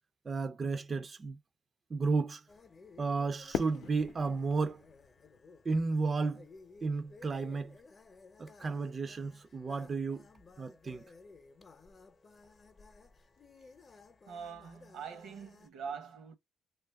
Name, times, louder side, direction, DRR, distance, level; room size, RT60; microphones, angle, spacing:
voice 1, 0.3-1.4 1.9-2.4 3.0-4.8 5.7-6.5 6.8-7.8 8.4-10.3 10.6-11.1, right 4 dB, 35° right, 0.3 m, -33 dB
sound 1, 2.5-15.7, left 4 dB, 35° left, 0.6 m, -57 dB
Fireworks, 3.5-6.6, left 8 dB, 75° left, 0.6 m, -41 dB
voice 2, 14.3-16.3, right 6 dB, 80° right, 0.7 m, -43 dB
2.8 x 2.3 x 3.4 m
cardioid pair, 90°, 0 cm